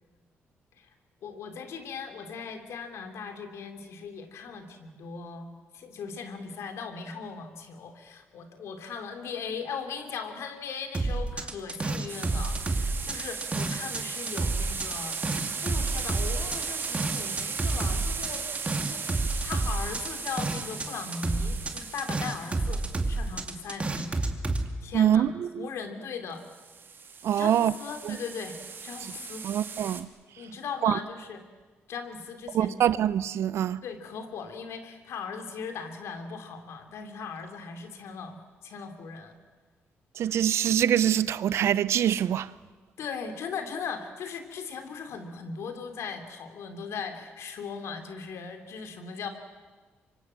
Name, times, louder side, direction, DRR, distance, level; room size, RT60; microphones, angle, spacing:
voice 1, 1.2-18.5 18.7-24.2 24.8-25.3 25.6-26.4 27.4-29.4 30.4-31.4 31.9-32.9 33.8-39.3 43.0-49.3, left 5 dB, 75° left, 3.1 m, -38 dB
sound 1, 10.9-14.0 14.3-20.9 21.1-24.6, right 2 dB, 25° right, 2.4 m, -29 dB
sound 2, 12.1-23.5 26.5-30.0, right 5 dB, 50° right, 2.2 m, -37 dB
voice 2, 24.9-25.7 27.2-27.7 28.0-28.2 29.0-29.1 29.4-30.1 30.8-31.0 32.5-33.8 40.2-42.5, right 10 dB, 75° right, 0.8 m, -24 dB
25.5 x 24.0 x 7.6 m
cardioid pair, 80°, 5 cm